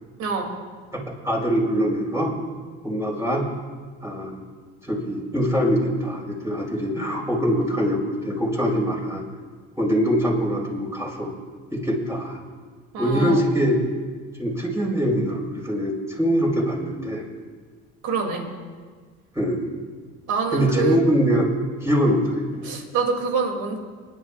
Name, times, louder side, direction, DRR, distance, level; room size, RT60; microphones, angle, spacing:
voice 1, 1.2-2.3 2.8-3.5 4.0-4.4 4.8-9.2 9.8-11.3 11.7-12.4 13.0-13.8 14.4-17.2 19.3-19.7 20.5-21.5 21.8-22.6, equal, 10° right, -3 dB, 5.0 m, -23 dB
voice 2, 12.9-13.4 18.0-18.4 20.3-21.0 22.6-23.8, right 5 dB, 75° right, 2 dB, 2.8 m, -25 dB
29.5 x 11.0 x 2.5 m, 1.5 s
supercardioid pair, 95°, 30 cm